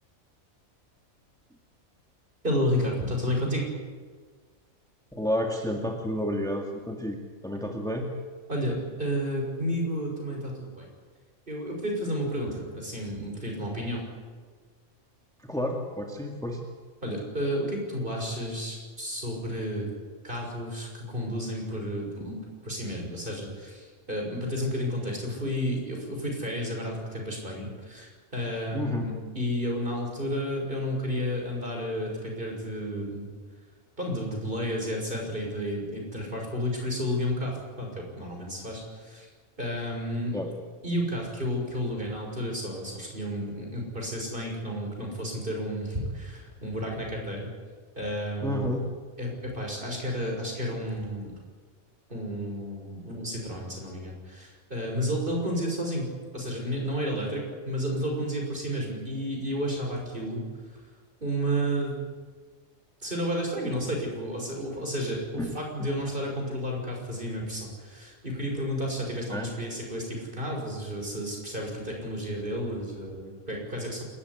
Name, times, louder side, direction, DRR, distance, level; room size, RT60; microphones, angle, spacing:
voice 1, 2.4-3.7 8.5-10.9 11.5-14.0 17.0-19.9 20.2-22.4 22.6-33.3 34.0-39.3 39.6-40.3 40.8-47.5 48.0-48.7 49.2-51.3 52.1-60.4 61.2-62.0 63.0-74.0, equal, 40° right, 0 dB, 6.5 m, -31 dB
voice 2, 5.1-7.2 7.4-8.1 15.4-16.6 28.7-29.1 40.3-40.5 48.4-48.8 65.4-65.5 65.8-65.9 69.3-69.5, left 1 dB, 5° left, 2 dB, 1.9 m, -30 dB
28.5 x 14.0 x 9.9 m, 1.5 s
omnidirectional pair, 1.4 m